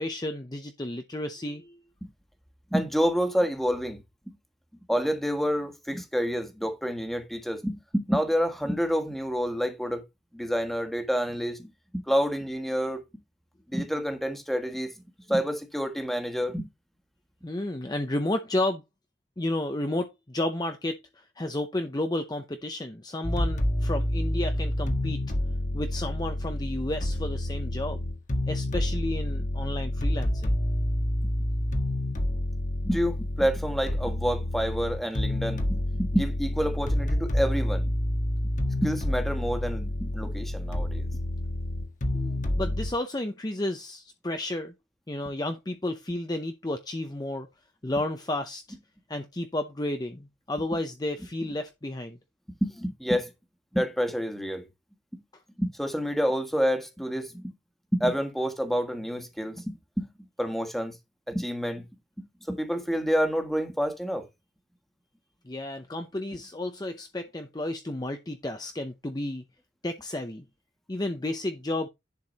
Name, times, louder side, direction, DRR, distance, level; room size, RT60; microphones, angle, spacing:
voice 1, 0.0-1.8 17.4-18.8 19.4-25.2 25.7-28.0 28.5-30.6 42.1-44.7 45.1-47.5 47.8-48.8 49.1-52.2 65.4-69.4 69.8-70.4 70.9-71.9, left 1 dB, 20° left, 0.7 m, -32 dB
voice 2, 2.7-4.0 4.9-10.0 10.3-13.0 13.7-14.9 15.3-16.7 32.8-37.9 38.8-41.0 52.6-53.3 53.7-54.6 55.6-57.5 57.9-60.1 60.4-60.9 61.3-61.8 62.5-64.2, equal, ahead, 1.6 m, -28 dB
sound 1, 23.2-42.9, left 1 dB, 45° left, 1.4 m, -28 dB
10.5 x 4.7 x 4.1 m
head